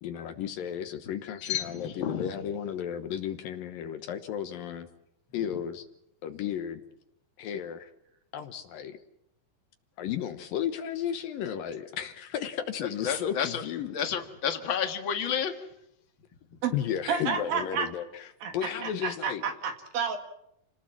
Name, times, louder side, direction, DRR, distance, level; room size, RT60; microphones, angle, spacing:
voice 1, 0.0-4.9 5.3-5.9 6.2-6.8 7.4-7.9 8.3-9.0 10.0-13.9 16.7-18.3 18.5-19.4, left 9 dB, 70° left, 8 dB, 2.8 m, -34 dB
voice 2, 1.4-2.3 5.5-5.6 12.8-13.6 13.9-15.7 16.5-16.6 18.6-18.8, left 8 dB, 40° left, 7 dB, 2.1 m, -31 dB
voice 3, 17.1-17.9 18.4-20.2, right 6 dB, 70° right, 6 dB, 3.8 m, -30 dB
29.5 x 19.0 x 7.5 m, 0.79 s
omnidirectional pair, 4.3 m